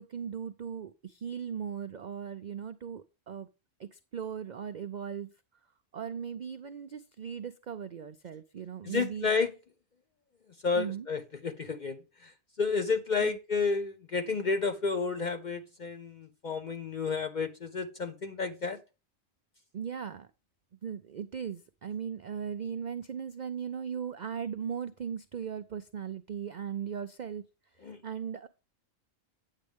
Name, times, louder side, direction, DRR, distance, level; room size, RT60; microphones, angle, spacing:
voice 1, 0.0-3.5 3.8-5.3 5.9-9.3 10.8-11.1 13.2-13.4 19.7-20.3 20.8-27.4 27.8-28.5, right 7 dB, 65° right, 0.4 m, -38 dB
voice 2, 8.8-9.5 10.6-12.3 12.6-18.8 27.8-28.0, left 4 dB, 50° left, 0.5 m, -31 dB
8.9 x 7.5 x 3.5 m
omnidirectional pair, 1.4 m